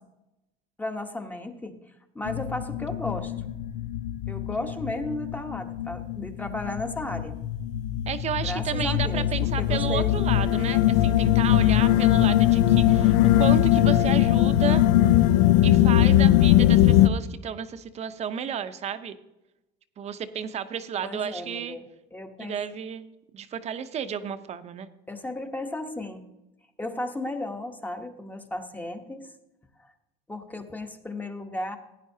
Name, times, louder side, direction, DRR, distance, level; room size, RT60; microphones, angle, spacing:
voice 1, 0.8-1.8 2.1-3.3 4.3-7.4 8.4-9.3 9.6-10.1 21.0-21.8 22.1-22.6 25.1-26.2 26.8-29.3 29.8-29.9 30.3-31.8, left 2 dB, 10° left, 6 dB, 1.1 m, -34 dB
sound 1, 2.3-17.1, left 13 dB, 80° left, 0.6 m, -21 dB
voice 2, 8.1-14.8 15.6-19.2 20.0-21.8 22.4-23.1 23.3-24.9, right 8 dB, 35° right, 11 dB, 0.8 m, -32 dB
16.0 x 9.7 x 2.8 m, 0.96 s
cardioid pair, 125°, 18 cm